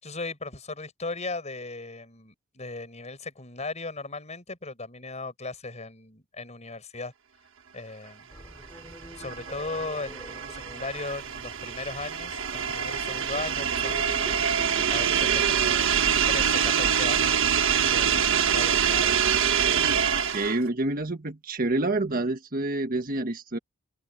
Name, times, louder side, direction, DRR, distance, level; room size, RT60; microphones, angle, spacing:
voice 1, 0.0-7.1 7.7-8.3 9.1-14.4 14.9-16.0 16.3-17.5 17.8-19.6, left 3 dB, 30° left, 6.0 m, -37 dB
sound 1, 8.3-15.1, equal, 10° left, 6.1 m, -45 dB
sound 2, 8.8-20.7, right 8 dB, 60° right, 1.7 m, -25 dB
voice 2, 20.3-23.6, right 2 dB, 40° right, 1.5 m, -28 dB
open air
head